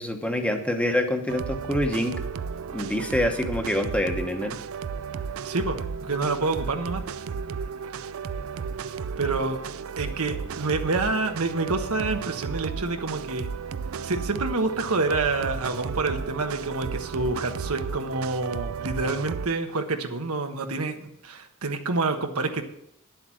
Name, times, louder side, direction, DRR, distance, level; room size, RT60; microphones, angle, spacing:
voice 1, 0.0-2.1 2.7-4.6, left 1 dB, 5° left, 4 dB, 1.1 m, -26 dB
sound 1, 1.3-19.5, right 6 dB, 65° right, 0.4 m, -33 dB
voice 2, 5.4-7.0 9.2-9.6 10.0-13.5 14.0-22.6, right 3 dB, 90° right, 5 dB, 1.3 m, -28 dB
10.5 x 7.9 x 6.3 m, 0.76 s
head